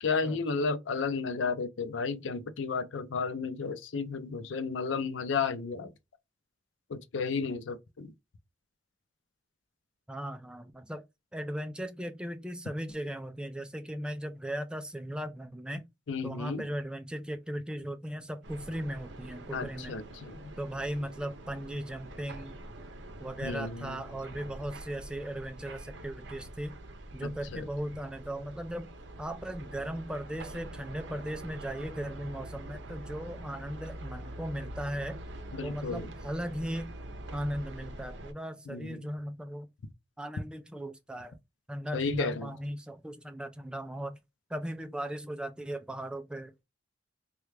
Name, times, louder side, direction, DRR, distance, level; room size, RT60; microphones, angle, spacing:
voice 1, 0.0-5.9 6.9-8.1 16.1-16.6 19.5-20.4 23.4-24.0 27.2-27.6 35.5-36.1 38.7-39.1 41.9-42.5, left 4 dB, 85° left, 0.5 m, -33 dB
voice 2, 10.1-11.0 11.3-15.9 16.2-20.0 20.6-22.6 23.2-26.8 27.1-35.2 35.6-36.9 37.3-39.7 40.2-41.4 41.7-44.2 44.5-46.6, equal, 5° right, 0.3 m, -37 dB
sound 1, 18.4-38.3, right 1 dB, 70° right, 0.6 m, -45 dB
3.3 x 2.3 x 3.1 m
head